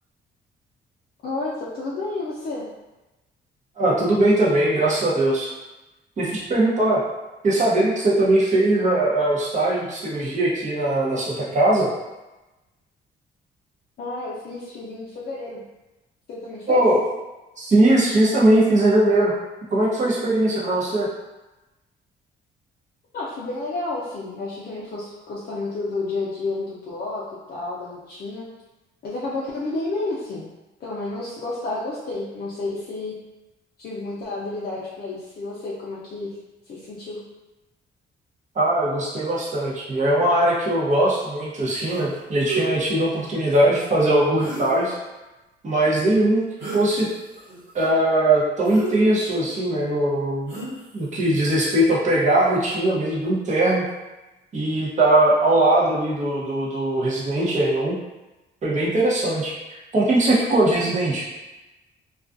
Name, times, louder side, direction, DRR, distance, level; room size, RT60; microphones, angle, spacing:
voice 1, 1.2-2.7 14.0-15.6 16.3-16.8 23.1-28.5 29.0-30.4 30.8-33.1 33.8-36.3 36.7-37.2, left 2 dB, 50° left, -7 dB, 0.5 m, -31 dB
voice 2, 3.8-5.5 6.2-7.0 7.4-11.9 16.7-17.0 17.6-19.3 19.7-21.1 38.5-44.9 45.6-46.4 46.7-47.1 47.7-50.6 50.9-53.8 54.5-58.0 58.6-59.5 59.9-61.2, right 1 dB, 40° right, -5 dB, 0.8 m, -20 dB
sound 1, 41.9-42.1 42.5-42.7 44.4-45.0 46.6-46.9 47.3-47.9 48.6-49.5 50.5-51.0, right 3 dB, 65° right, 1.3 m, -31 dB
2.4 x 2.3 x 2.5 m, 1.0 s
cardioid pair, 90°, 20 cm